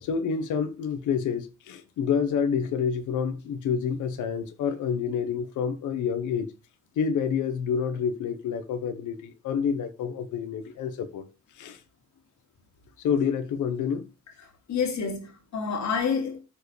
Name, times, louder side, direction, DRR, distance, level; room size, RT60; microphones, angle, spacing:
voice 1, 0.0-6.5 7.0-11.2 11.6-11.8 13.0-14.0, left 7 dB, 80° left, 1.2 m, -28 dB
voice 2, 14.4-16.4, left 6 dB, 65° left, 2.9 m, -29 dB
14.0 x 4.8 x 3.3 m
cardioid pair, 90°, 30 cm